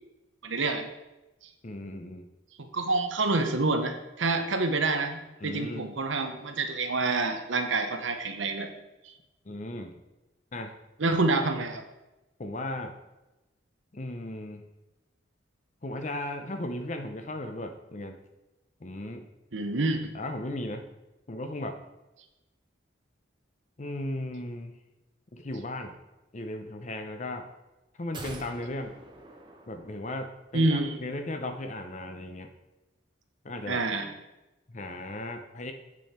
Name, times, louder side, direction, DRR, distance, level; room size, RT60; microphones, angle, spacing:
voice 1, 0.4-0.9 2.6-8.7 9.0-9.1 11.0-11.8 19.5-20.1 30.5-31.0 33.7-34.1, right 3 dB, 75° right, 7 dB, 1.0 m, -27 dB
voice 2, 1.6-2.3 5.4-5.9 9.5-10.0 10.5-10.7 12.4-12.9 13.9-14.6 15.8-18.2 18.8-19.3 20.1-20.9 21.3-21.8 23.8-24.7 25.3-25.9 26.3-27.5 28.0-29.0 29.7-32.5 33.4-33.8 34.7-35.7, left 1 dB, 35° left, 6 dB, 0.6 m, -36 dB
sound 1, 28.1-30.5 30.8-30.9, right 2 dB, 25° right, 0.9 m, -46 dB
8.6 x 6.3 x 4.3 m, 1.0 s
head